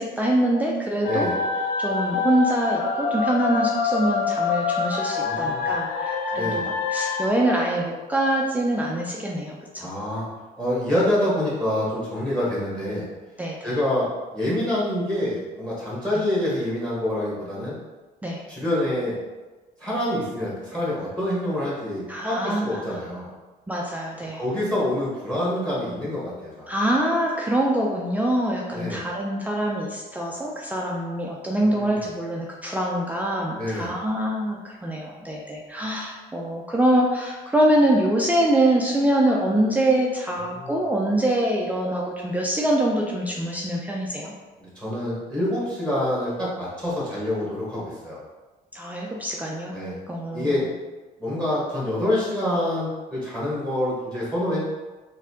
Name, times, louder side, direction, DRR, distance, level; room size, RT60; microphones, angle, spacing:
voice 1, 0.0-1.3 1.8-6.6 6.9-9.9 13.4-13.6 16.1-16.2 18.2-18.4 22.1-23.0 23.7-24.4 26.7-44.3 48.7-49.8 50.1-50.7, right 1 dB, 10° right, -3 dB, 0.4 m, -24 dB
sound 1, 1.0-7.3, left 4 dB, 85° left, 0.5 m, -26 dB
voice 2, 5.2-5.7 6.3-6.7 9.8-10.3 10.6-13.0 13.6-17.7 18.5-19.2 19.8-23.3 24.3-26.7 28.7-29.0 31.6-32.1 33.6-34.0 40.5-40.7 44.6-48.2 49.7-50.0 50.3-50.6 51.2-54.6, left 1 dB, 5° left, -6 dB, 1.1 m, -26 dB
4.0 x 2.7 x 2.7 m, 1.2 s
cardioid pair, 110°, 17 cm